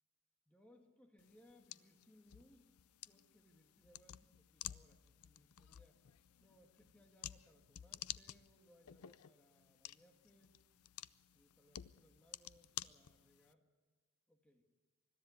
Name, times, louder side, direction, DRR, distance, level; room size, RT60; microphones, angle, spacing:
voice 1, 0.5-2.7 3.0-6.0 6.4-10.6 11.3-13.7 14.3-14.6, equal, 5° left, 4 dB, 1.5 m, -68 dB
sound 1, 1.2-13.5, left 13 dB, 85° left, 0.5 m, -53 dB
21.5 x 13.0 x 9.5 m, 1.5 s
head